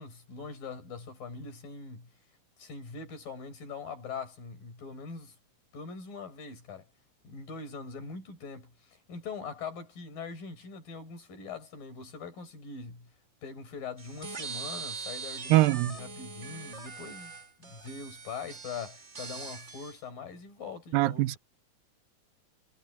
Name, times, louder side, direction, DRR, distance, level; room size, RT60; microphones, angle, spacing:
voice 1, 0.0-2.1 2.6-5.4 5.7-6.9 7.2-13.1 13.4-17.3 17.6-21.4, left 5 dB, 80° left, 7.4 m, -42 dB
sound 1, 14.0-20.0, right 5 dB, 40° right, 1.0 m, -42 dB
voice 2, 15.5-15.9 20.9-21.4, right 17 dB, 90° right, 2.5 m, -23 dB
omnidirectional pair, 4.0 m